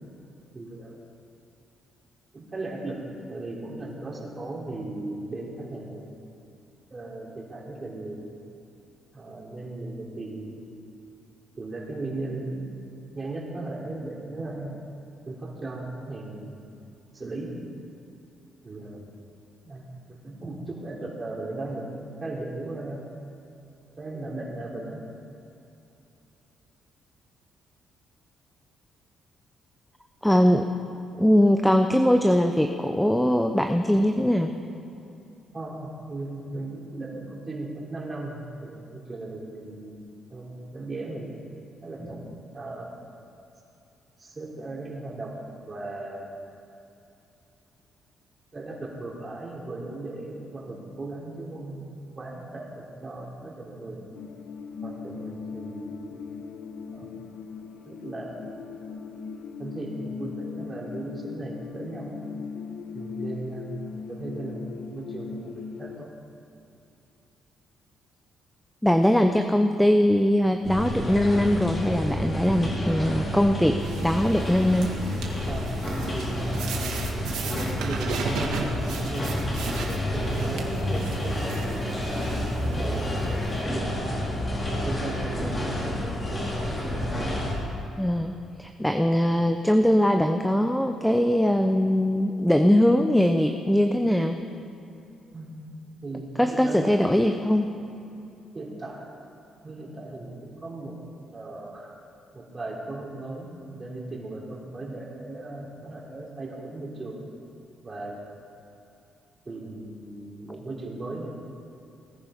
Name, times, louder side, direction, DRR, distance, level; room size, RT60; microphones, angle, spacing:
voice 1, 0.5-1.0 2.3-3.0 3.3-6.1 6.9-8.3 9.1-10.7 11.6-12.8 13.1-14.8 15.3-16.6 17.1-17.6 18.6-19.1 19.6-23.0 24.0-25.0 35.5-41.4 41.8-42.2 42.5-42.9 44.2-45.4 45.7-46.3 48.5-54.1 54.8-56.3 56.9-57.1 57.9-58.4 59.6-62.2 62.9-66.1 75.4-76.7 77.4-82.3 82.6-84.0 84.8-86.5 95.3-96.9 98.5-99.1 99.6-101.0 101.3-101.9 102.3-107.2 107.8-108.2 109.5-111.3, right 2 dB, 30° right, -3 dB, 3.4 m, -37 dB
voice 2, 30.2-30.7 31.2-34.5 68.8-74.9 88.0-94.4 96.4-97.7, equal, 5° left, 6 dB, 0.7 m, -21 dB
sound 1, 54.2-66.0, left 5 dB, 80° left, 0.9 m, -38 dB
sound 2, 70.6-87.6, left 1 dB, 30° left, 3.8 m, -29 dB
sound 3, 73.8-83.6, right 5 dB, 85° right, 1.7 m, -37 dB
19.0 x 10.5 x 5.1 m, 2.8 s
cardioid pair, 90°, 0 cm